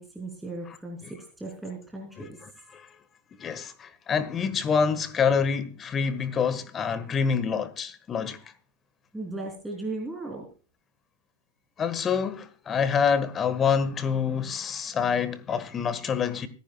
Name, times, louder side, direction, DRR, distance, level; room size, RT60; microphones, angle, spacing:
voice 1, 0.0-2.4 9.1-10.5, right 2 dB, 5° right, 3.4 m, -37 dB
voice 2, 3.4-8.4 11.8-16.5, left 6 dB, 25° left, 1.5 m, -26 dB
25.0 x 10.0 x 2.3 m
figure-of-eight pair, 90°, 0 cm